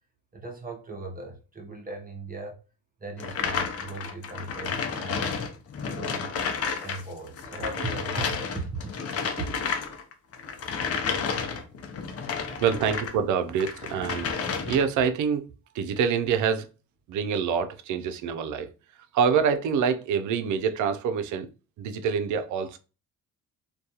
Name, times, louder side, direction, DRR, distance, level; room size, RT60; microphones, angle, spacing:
voice 1, 0.3-2.6 3.0-5.3 5.9-6.3 6.8-8.9 9.4-9.5 12.1-12.9, right 2 dB, 30° right, 0.7 m, -38 dB
sound 1, 3.2-7.0 7.3-13.2 13.6-15.0, left 6 dB, 55° left, 0.6 m, -31 dB
voice 2, 12.6-14.3 14.6-15.5 15.7-16.7 17.1-18.7 19.1-21.5 21.8-22.8, right 6 dB, 75° right, 0.5 m, -26 dB
2.3 x 2.3 x 2.7 m
cardioid pair, 90°, 30 cm